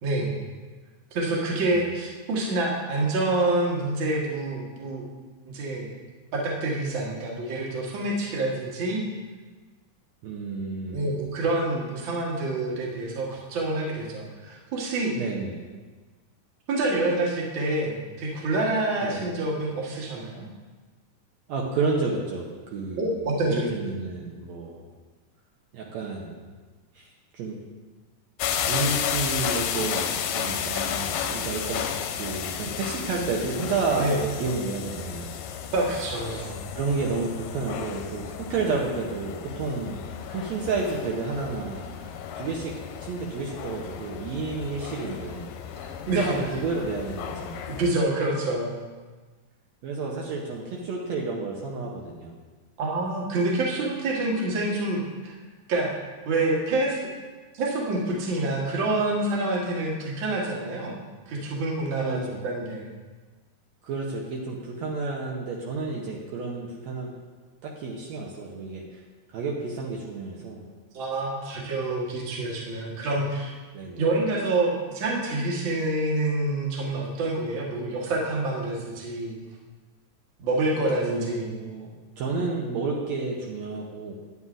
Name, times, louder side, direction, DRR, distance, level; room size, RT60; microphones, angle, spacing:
voice 1, 0.0-0.4 1.1-5.0 5.5-5.9 6.3-9.0 10.9-15.1 16.7-20.5 23.0-23.7 34.0-34.2 35.7-36.6 46.1-46.3 47.8-48.7 52.8-55.3 55.7-55.9 56.3-57.0 57.5-61.0 61.3-62.9 70.9-73.6 74.0-79.3 80.4-81.6, right 2 dB, 50° right, -3 dB, 1.7 m, -27 dB
voice 2, 10.2-11.1 15.2-15.6 19.0-19.3 21.5-24.9 25.7-26.4 27.0-27.6 28.6-34.1 34.4-35.3 36.4-40.0 40.3-42.1 42.4-42.7 43.0-45.5 46.1-47.7 49.8-52.3 62.0-62.4 63.8-67.1 67.6-69.0 69.3-70.6 73.7-74.0 81.0-81.9 82.2-84.1, right 4 dB, 75° right, -2 dB, 1.9 m, -31 dB
sound 1, 28.4-47.9, left 8 dB, 85° left, 1.9 m, -33 dB
9.5 x 9.4 x 2.5 m, 1.3 s
omnidirectional pair, 3.4 m